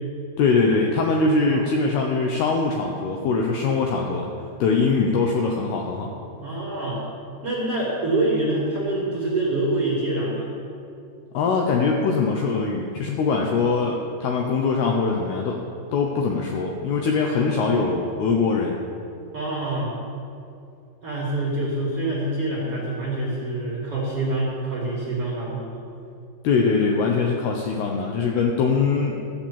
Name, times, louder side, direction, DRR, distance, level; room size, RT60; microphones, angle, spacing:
voice 1, 0.4-4.3 4.6-6.1 11.3-15.6 15.9-18.8 26.4-29.2, left 4 dB, 75° left, 1 dB, 2.6 m, -22 dB
voice 2, 6.4-7.0 7.4-10.5 17.3-17.8 19.3-20.0 21.0-25.8, right 2 dB, 45° right, -5 dB, 2.0 m, -26 dB
14.5 x 7.8 x 7.2 m, 2.6 s
omnidirectional pair, 5.3 m